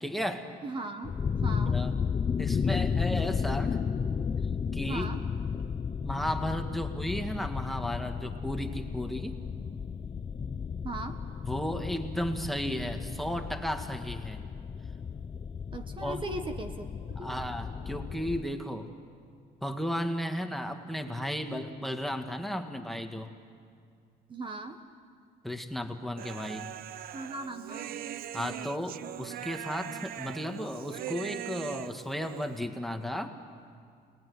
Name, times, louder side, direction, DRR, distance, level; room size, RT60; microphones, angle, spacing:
voice 1, 0.0-0.5 1.7-1.9 2.4-3.8 4.7-5.1 6.0-9.4 11.4-14.4 16.0-16.2 17.2-18.9 19.6-23.3 25.4-26.7 28.3-33.4, equal, ahead, 6 dB, 1.8 m, -34 dB
voice 2, 0.6-1.2 1.4-1.8 4.9-5.2 10.8-11.2 15.7-16.9 17.2-17.3 24.3-24.8 27.1-28.0, right 2 dB, 30° right, 7 dB, 1.5 m, -38 dB
sound 1, 1.0-18.4, left 6 dB, 30° left, 0.6 m, -33 dB
Human voice, 26.2-32.6, right 12 dB, 60° right, 0.6 m, -41 dB
30.0 x 19.0 x 9.5 m, 2.2 s
cardioid pair, 110°, 17 cm